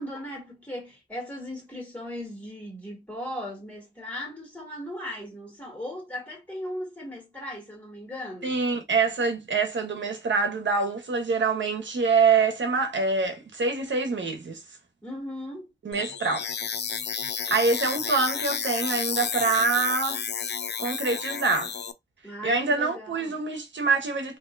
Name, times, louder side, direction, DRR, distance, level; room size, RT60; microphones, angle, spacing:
voice 1, 0.0-8.6 15.0-15.7 22.2-23.3, left 1 dB, 10° left, 2.5 m, -37 dB
voice 2, 8.4-14.6 15.8-16.5 17.5-20.2 20.8-21.7 22.4-24.4, right 4 dB, 70° right, 1.1 m, -25 dB
sound 1, 15.9-21.9, left 7 dB, 60° left, 0.4 m, -31 dB
3.5 x 2.9 x 2.6 m
wide cardioid pair, 80°, 20 cm